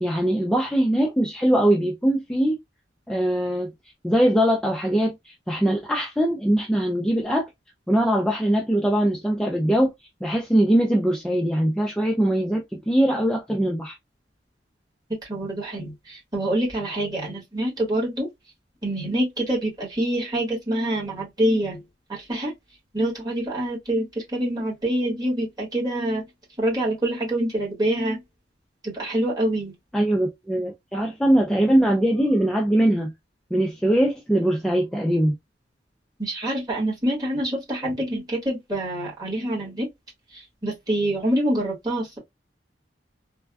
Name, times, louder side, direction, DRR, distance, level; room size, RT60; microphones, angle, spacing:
voice 1, 0.0-2.6 3.1-3.7 4.0-7.5 7.9-9.9 10.2-14.0 29.9-33.1 33.5-35.4, right 1 dB, 5° left, 0.3 m, -21 dB
voice 2, 15.3-18.3 18.8-21.8 22.1-22.5 22.9-26.2 26.6-28.2 28.8-29.7 36.2-39.9 40.3-42.2, right 1 dB, 20° right, 1.4 m, -26 dB
3.3 x 2.1 x 2.3 m
head